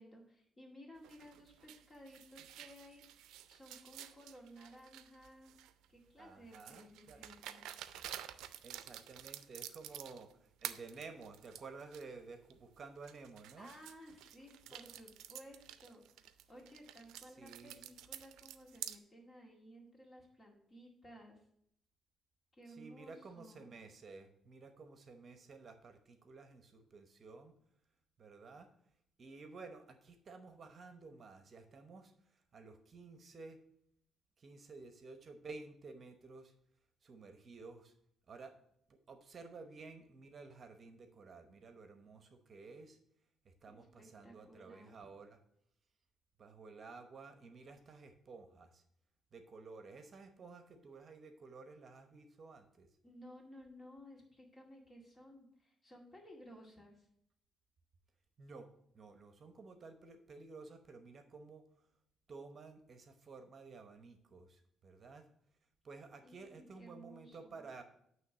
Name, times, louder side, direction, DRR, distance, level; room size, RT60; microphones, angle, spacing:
voice 1, 0.0-5.5 5.9-7.6 8.9-9.1 13.6-21.4 22.5-23.7 43.7-45.1 53.0-57.1 66.2-67.7, equal, 30° left, 0 dB, 2.0 m, -57 dB
sound 1, 1.0-5.9 6.5-10.3 10.6-12.0 12.5-12.6 13.0-19.0, right 12 dB, 90° right, 0.4 m, -50 dB
voice 2, 6.2-7.2 8.6-13.7 14.7-14.8 17.2-17.8 22.7-27.6 28.2-28.7 29.2-33.6 34.4-36.5 37.0-37.9 38.3-38.6 38.9-43.0 43.4-45.4 46.4-48.8 49.3-52.9 58.4-61.6 62.3-65.3 65.8-67.8, right 4 dB, 45° right, 7 dB, 0.9 m, -53 dB
9.2 x 3.1 x 6.6 m, 0.72 s
cardioid pair, 90°, 0 cm